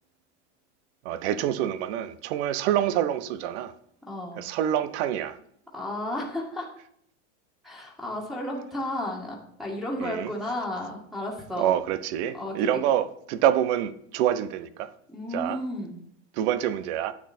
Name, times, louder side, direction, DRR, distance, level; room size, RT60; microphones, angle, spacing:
voice 1, 1.0-3.7 4.4-5.4 10.0-10.3 11.6-14.9 15.3-15.6 16.3-17.1, right 11 dB, 65° right, 1.0 m, -26 dB
voice 2, 4.1-4.4 5.7-6.7 7.6-11.7 12.3-12.7 15.1-16.0, left 1 dB, ahead, 1.9 m, -33 dB
9.9 x 8.4 x 4.4 m
supercardioid pair, 140°, 37 cm